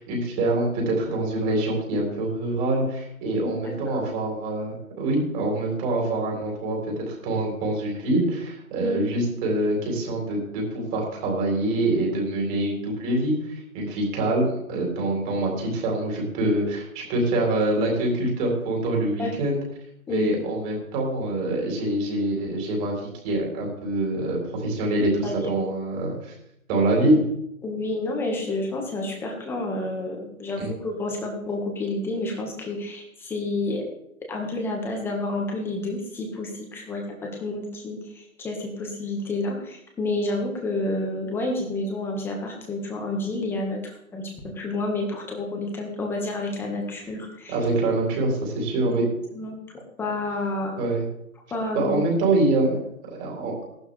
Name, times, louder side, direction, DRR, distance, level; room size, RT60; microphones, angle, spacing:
voice 1, 0.0-19.6 20.1-26.3 26.7-27.2 30.6-30.7 47.5-49.0 50.8-51.0 51.7-52.8 53.2-53.5, right 2 dB, 20° right, -1 dB, 4.1 m, -25 dB
voice 2, 3.6-4.0 8.8-9.3 19.2-19.4 20.1-20.3 25.2-25.5 27.6-33.8 34.3-37.0 37.4-43.8 44.1-47.6 48.8-48.9 49.3-49.6 50.0-50.8 51.5-51.9, left 2 dB, 5° left, 0 dB, 1.6 m, -29 dB
18.0 x 12.0 x 3.4 m, 0.78 s
hypercardioid pair, 155°, 44 cm